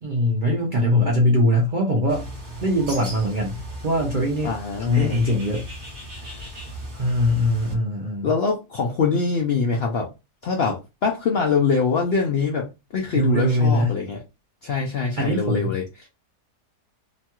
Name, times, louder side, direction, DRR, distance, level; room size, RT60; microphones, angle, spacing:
voice 1, 0.0-2.2 2.6-4.5 4.8-5.7 7.0-8.3 13.1-14.0 15.2-15.8, left 1 dB, 60° right, 0.5 m, -22 dB
Bird, 2.1-7.7, right 1 dB, 35° right, 1.0 m, -37 dB
voice 2, 4.4-5.2 8.2-10.1 10.4-14.2 14.6-15.8, left 5 dB, 70° left, 0.6 m, -23 dB
3.0 x 2.3 x 2.9 m
omnidirectional pair, 1.6 m